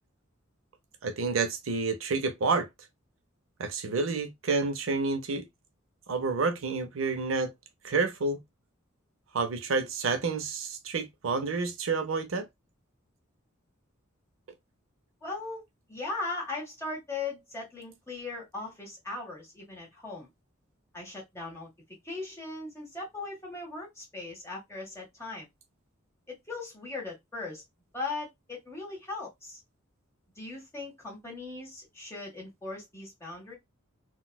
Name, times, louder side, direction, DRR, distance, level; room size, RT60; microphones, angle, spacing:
voice 1, 1.0-2.7 3.6-5.4 6.1-7.5 7.8-8.4 9.3-12.5, right 4 dB, 70° right, 0.6 m, -29 dB
voice 2, 15.2-15.6 15.9-20.3 20.9-21.7 22.0-25.5 26.3-27.6 27.9-29.6 30.3-33.5, left 3 dB, 15° left, 1.5 m, -38 dB
4.0 x 2.3 x 2.2 m
head